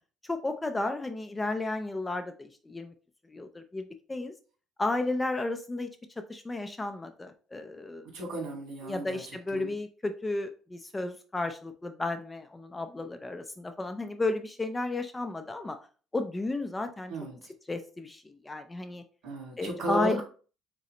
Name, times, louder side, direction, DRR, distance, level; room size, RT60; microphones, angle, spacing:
voice 1, 0.2-2.9 3.3-4.3 4.8-5.9 6.3-8.1 8.8-15.8 16.1-17.1 17.7-19.0 19.6-20.2, left 2 dB, 10° left, 8 dB, 0.4 m, -33 dB
voice 2, 8.1-9.2 9.5-9.7 17.1-17.4 19.2-20.2, equal, 65° right, 1 dB, 2.1 m, -34 dB
3.9 x 3.7 x 3.1 m, 0.38 s
cardioid pair, 150°, 0 cm